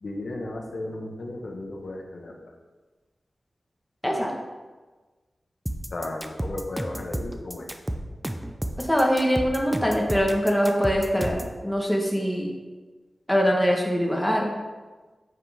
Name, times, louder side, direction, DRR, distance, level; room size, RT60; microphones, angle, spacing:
voice 1, 0.0-2.5 5.9-7.7, left 2 dB, 65° left, 1 dB, 1.2 m, -35 dB
sound 1, 5.7-11.6, right 1 dB, 10° right, 0.6 m, -31 dB
voice 2, 8.8-12.5 13.3-14.5, equal, 5° left, -1 dB, 1.3 m, -23 dB
9.4 x 5.7 x 3.6 m, 1.3 s
wide cardioid pair, 90°, 0 cm